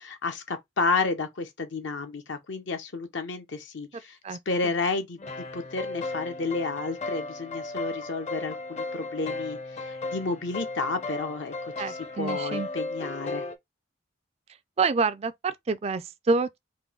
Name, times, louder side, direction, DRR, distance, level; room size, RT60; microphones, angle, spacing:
voice 1, 0.0-4.2 4.5-5.2 5.5-13.4, left 3 dB, 70° left, 0.7 m, -31 dB
sound 1, 5.2-13.6, left 2 dB, 35° left, 0.6 m, -35 dB
voice 2, 11.8-12.7 14.8-16.6, right 4 dB, 30° right, 0.4 m, -27 dB
3.8 x 2.6 x 3.5 m
head